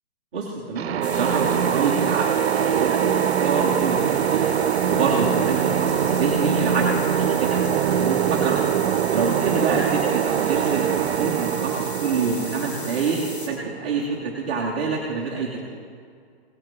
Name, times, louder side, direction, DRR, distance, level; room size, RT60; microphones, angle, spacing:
voice 1, 0.3-4.5 4.9-8.6 9.1-10.9 11.2-15.6, right 4 dB, 10° right, -6 dB, 0.4 m, -27 dB
sound 1, 0.8-14.4, right 8 dB, 75° right, 0.5 m, -23 dB
sound 2, 1.0-13.5, left 2 dB, 85° left, 2.2 m, -37 dB
16.5 x 6.2 x 5.8 m, 2.2 s
hypercardioid pair, 155°, 32 cm